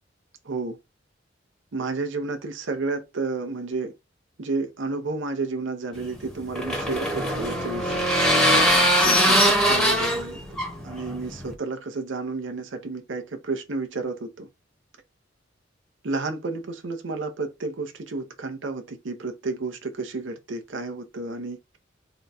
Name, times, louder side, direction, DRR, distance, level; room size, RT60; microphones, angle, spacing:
voice 1, 0.4-0.8 1.7-3.9 4.4-8.0 9.0-10.4 10.8-14.5 16.0-21.6, right 3 dB, 75° right, 0.7 m, -31 dB
sound 1, 6.0-11.5, equal, 5° left, 0.8 m, -21 dB
3.8 x 2.3 x 4.0 m
head